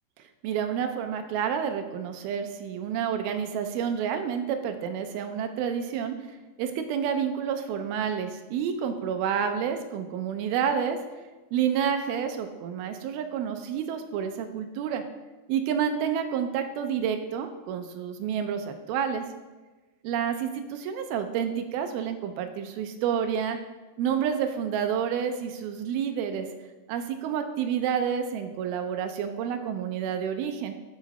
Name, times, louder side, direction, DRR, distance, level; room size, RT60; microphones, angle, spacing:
voice 1, 0.4-6.2 6.6-11.0 11.5-15.0 15.5-19.3 20.0-23.6 24.0-26.5 26.9-30.8, right 8 dB, 80° right, 7 dB, 2.4 m, -29 dB
11.5 x 3.8 x 4.1 m, 1.2 s
omnidirectional pair, 4.5 m